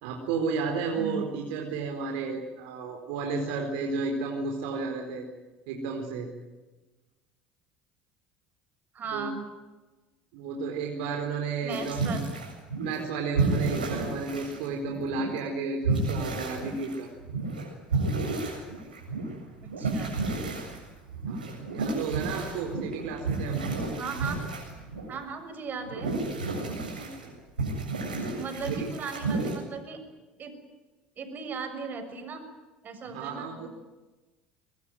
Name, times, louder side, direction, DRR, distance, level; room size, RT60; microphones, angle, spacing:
voice 1, 0.0-5.3 5.7-6.3 9.1-9.3 10.3-12.1 12.8-17.1 21.3-23.6 26.9-27.3 28.3-28.4 28.7-28.9 33.1-33.7, right 4 dB, 70° right, 2 dB, 4.3 m, -32 dB
voice 2, 8.9-9.4 11.6-12.2 19.6-20.2 24.0-24.4 25.1-26.1 28.2-30.0 30.4-30.5 31.2-32.4 32.8-33.7, right 5 dB, 40° right, 7 dB, 6.8 m, -37 dB
sound 1, 11.7-13.1 13.3-15.4 15.8-25.2 25.8-27.3 27.6-29.6, right 3 dB, 90° right, 7.6 m, -31 dB
24.5 x 21.0 x 9.4 m, 1.2 s
hypercardioid pair, 70°, 5 cm